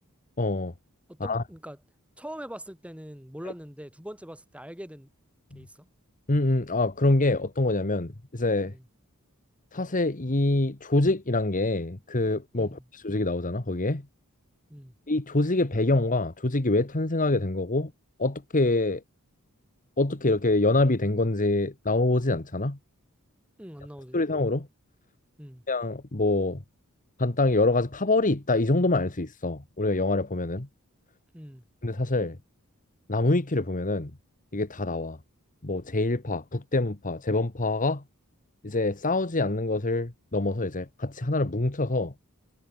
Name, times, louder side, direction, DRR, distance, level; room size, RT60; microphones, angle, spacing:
voice 1, 0.4-0.7 1.2-1.4 5.5-5.6 6.3-8.7 9.7-14.0 15.1-17.9 18.2-19.0 20.0-22.8 24.1-24.7 25.7-26.6 27.2-30.7 31.8-32.4 33.1-34.1 34.5-35.2 35.6-38.0 38.6-42.1, left 2 dB, 35° left, 1.6 m, -25 dB
voice 2, 1.1-1.8 2.2-5.1 5.5-5.9 8.7-8.8 12.5-12.8 14.7-14.9 23.6-24.2 25.4-25.6 31.3-31.6, equal, 5° right, 3.8 m, -42 dB
head